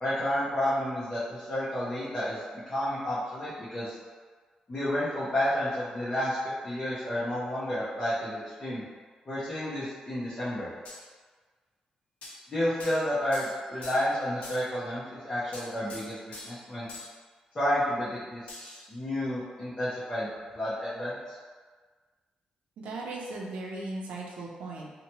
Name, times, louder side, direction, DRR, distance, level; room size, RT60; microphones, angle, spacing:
voice 1, 0.0-2.4 2.7-3.9 4.7-6.4 6.6-8.8 9.3-10.7 12.5-16.9 17.5-18.4 18.9-21.4, left 1 dB, 25° left, -11 dB, 0.7 m, -31 dB
sound 1, 10.9-11.0 12.2-12.4 12.8-13.1 13.3-14.2 14.4-14.7 15.5-16.6 16.9-17.1 18.5-18.9, left 2 dB, 70° left, 0.6 m, -44 dB
voice 2, 22.8-24.9, right 2 dB, 90° right, -2 dB, 0.5 m, -37 dB
2.8 x 2.1 x 2.8 m, 1.5 s
wide cardioid pair, 145°, 2 cm